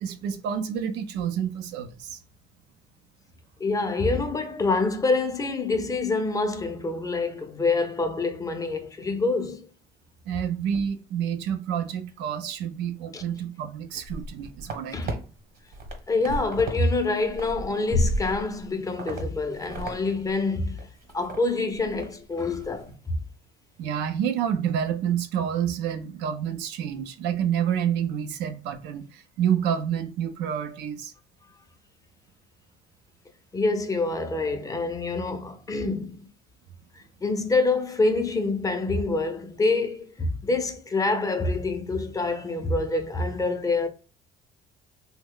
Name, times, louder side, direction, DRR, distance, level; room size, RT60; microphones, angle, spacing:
voice 1, 0.0-2.2 10.3-15.2 23.8-31.1, right 9 dB, 90° right, 0.5 m, -28 dB
voice 2, 3.6-9.7 13.1-13.2 14.9-15.2 16.1-20.9 21.1-23.0 33.5-36.3 37.2-43.9, left 3 dB, 20° left, 0.5 m, -26 dB
sound 1, 14.0-15.1 15.6-16.8 17.1-18.6 19.0-19.2 19.5-20.0 20.3-20.4 20.8-21.4 21.7-22.1 22.4-22.7, right 1 dB, 65° right, 1.1 m, -32 dB
3.1 x 2.1 x 3.6 m
cardioid pair, 110°, 17 cm